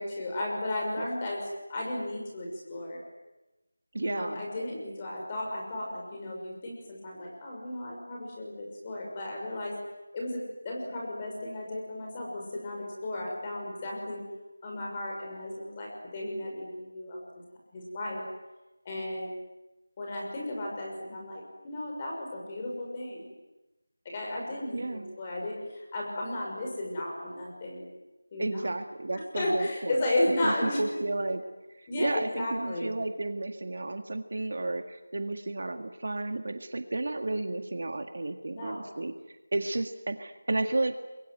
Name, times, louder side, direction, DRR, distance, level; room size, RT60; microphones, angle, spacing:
voice 1, 0.0-1.4 1.7-3.0 4.0-9.8 10.1-14.2 14.6-17.3 17.7-18.2 18.8-19.3 20.0-23.3 24.0-27.9 28.3-28.7 29.1-30.8 31.9-32.9 38.5-38.9, left 1 dB, 15° left, -2 dB, 6.2 m, -34 dB
voice 2, 3.9-4.4 24.7-25.1 28.4-30.0 30.4-31.4 31.8-40.9, right 2 dB, 50° right, 8 dB, 1.8 m, -32 dB
26.0 x 22.5 x 9.5 m, 1.1 s
figure-of-eight pair, 175°, 0 cm